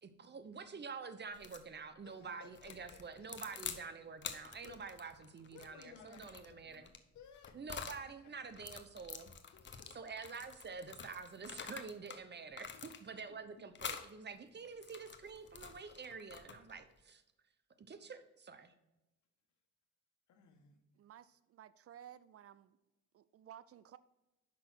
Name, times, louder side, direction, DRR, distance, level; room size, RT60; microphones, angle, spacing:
voice 1, 0.0-6.9 7.5-9.3 9.9-17.2 17.8-18.7, right 5 dB, 35° right, 10 dB, 0.9 m, -48 dB
sound 1, 1.3-1.7 2.6-3.8 4.2-8.0 8.5-12.2 12.5-13.3 13.8-14.1 14.6-16.8, left 6 dB, 40° left, 0.9 m, -48 dB
voice 2, 2.0-3.3 4.6-4.8 5.5-8.3 9.5-10.1 12.7-13.6 20.3-20.8, left 7 dB, 70° left, 5 dB, 1.4 m, -60 dB
voice 3, 21.0-22.8 23.1-24.0, right 10 dB, 50° right, 16 dB, 0.4 m, -56 dB
6.0 x 5.6 x 6.1 m, 1.0 s
cardioid pair, 90°, 30 cm